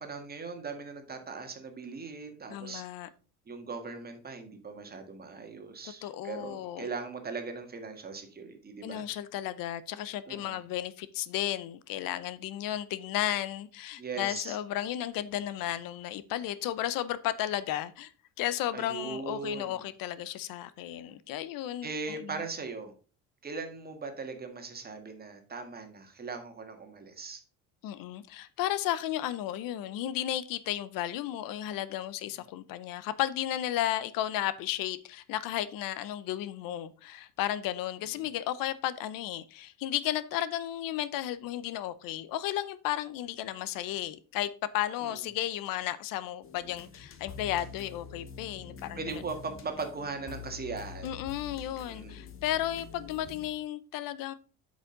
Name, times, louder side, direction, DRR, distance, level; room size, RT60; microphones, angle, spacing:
voice 1, 0.0-2.8 3.5-9.0 10.3-10.6 14.0-14.6 18.7-19.8 21.8-22.9 23.4-27.4 45.0-45.2 49.0-51.2 51.9-52.2, right 4 dB, 25° right, 6 dB, 1.6 m, -39 dB
voice 2, 2.5-3.1 6.0-6.9 8.8-18.1 18.4-22.3 27.8-49.2 51.0-54.3, left 12 dB, 75° left, 15 dB, 0.7 m, -34 dB
sound 1, 46.4-53.5, left 6 dB, 40° left, 1.3 m, -46 dB
8.2 x 5.2 x 3.8 m, 0.37 s
cardioid pair, 120°, 34 cm